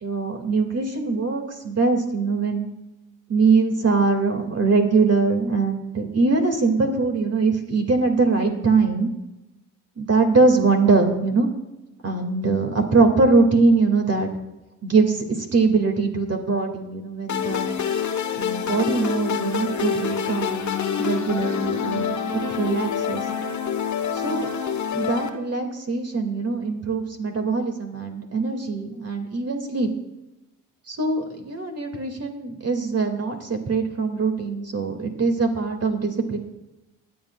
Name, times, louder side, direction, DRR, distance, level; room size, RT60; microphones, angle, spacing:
voice 1, 0.0-2.7 3.3-9.1 10.0-11.5 12.0-14.3 14.8-17.7 18.4-20.7 21.0-23.2 24.1-24.5 24.9-29.9 30.9-36.4, right 4 dB, 35° right, 4 dB, 2.4 m, -22 dB
sound 1, 17.3-25.3, left 7 dB, 40° left, 1.3 m, -26 dB
23.5 x 8.4 x 2.4 m, 0.97 s
hypercardioid pair, 50°, 42 cm